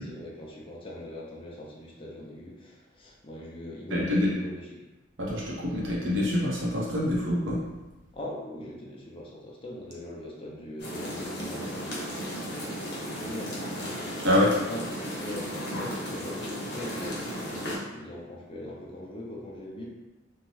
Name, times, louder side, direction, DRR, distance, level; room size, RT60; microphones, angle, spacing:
voice 1, 0.1-4.8 8.1-12.7 13.0-14.0 14.7-14.9 15.2-19.9, left 1 dB, 30° left, -3 dB, 0.5 m, -41 dB
voice 2, 3.9-4.3 5.2-7.6 14.2-14.5, left 1 dB, 70° right, -5 dB, 0.8 m, -25 dB
sound 1, 10.8-17.8, equal, 60° left, 0.9 m, -35 dB
2.6 x 2.2 x 3.1 m, 1.1 s
head